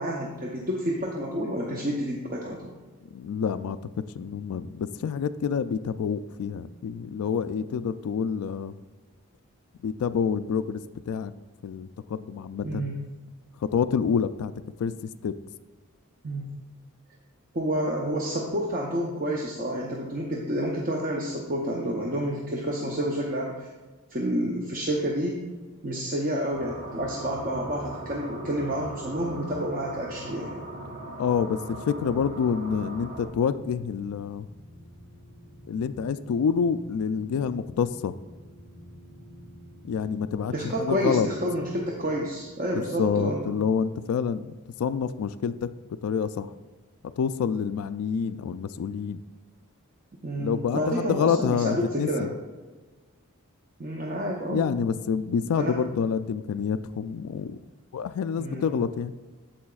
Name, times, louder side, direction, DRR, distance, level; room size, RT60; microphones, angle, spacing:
voice 1, 0.0-2.7 12.6-13.0 16.2-16.5 17.5-23.7 24.1-25.4 25.8-30.6 40.5-43.4 50.2-52.3 53.8-54.7 55.6-55.7 58.4-58.7, equal, 35° right, -2 dB, 0.7 m, -29 dB
voice 2, 3.1-8.8 9.8-11.3 11.6-12.9 13.6-14.5 14.8-15.3 31.2-34.5 35.7-38.1 39.9-41.3 42.7-45.7 46.0-46.5 47.2-49.2 50.3-52.3 54.5-57.6 57.9-59.1, left 6 dB, 80° left, 14 dB, 0.3 m, -27 dB
sound 1, 26.5-33.3, right 1 dB, 65° right, 1.8 m, -39 dB
sound 2, 32.0-45.2, equal, 5° right, 1.2 m, -50 dB
8.6 x 7.5 x 2.4 m, 1.3 s
head